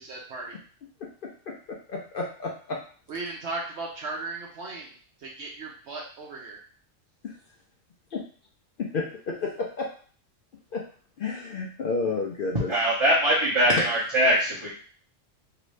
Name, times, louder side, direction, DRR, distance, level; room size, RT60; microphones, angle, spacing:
voice 1, 0.1-0.5 3.1-4.9 5.2-6.6, right 3 dB, 65° right, -2 dB, 0.9 m, -36 dB
voice 2, 1.9-2.8 7.2-7.3 8.1-8.2 8.8-9.9 10.7-10.8 11.2-12.7 13.8-14.0, left 3 dB, 60° left, 0 dB, 0.5 m, -30 dB
voice 3, 12.7-14.7, right 1 dB, 30° right, -8 dB, 0.6 m, -22 dB
2.9 x 2.6 x 3.1 m, 0.44 s
omnidirectional pair, 1.3 m